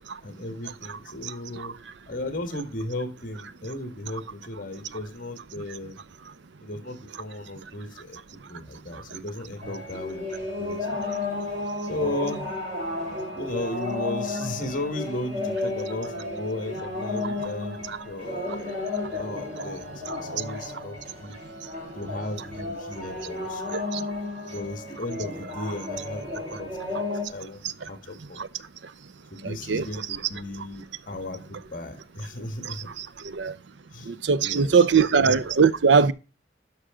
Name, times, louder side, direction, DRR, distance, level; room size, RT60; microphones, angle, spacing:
voice 1, 0.2-1.8 2.1-6.0 6.6-8.2 8.5-10.3 10.6-10.9 11.9-12.5 13.3-21.4 21.9-23.7 24.5-28.4 29.3-32.9 33.9-34.1 34.4-35.4, left 1 dB, 45° left, 1.8 m, -35 dB
sound 1, 9.6-27.3, left 2 dB, 35° right, 4.4 m, -33 dB
voice 2, 29.4-29.8 33.3-33.5 34.1-36.1, right 5 dB, 75° right, 0.6 m, -20 dB
11.5 x 5.9 x 3.7 m
head